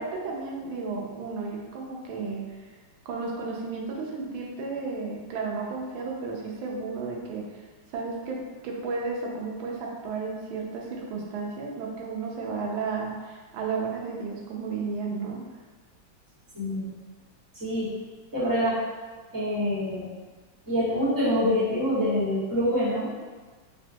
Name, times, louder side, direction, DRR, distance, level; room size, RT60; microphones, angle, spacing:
voice 1, 0.0-2.5 3.1-7.6 7.9-8.4 8.6-15.4, right 4 dB, 90° right, -2 dB, 1.4 m, -33 dB
voice 2, 16.5-16.9 17.6-17.9 18.3-18.8 19.3-20.1 20.7-23.1, equal, 15° right, -13 dB, 0.9 m, -25 dB
3.7 x 2.2 x 2.6 m, 1.4 s
omnidirectional pair, 2.2 m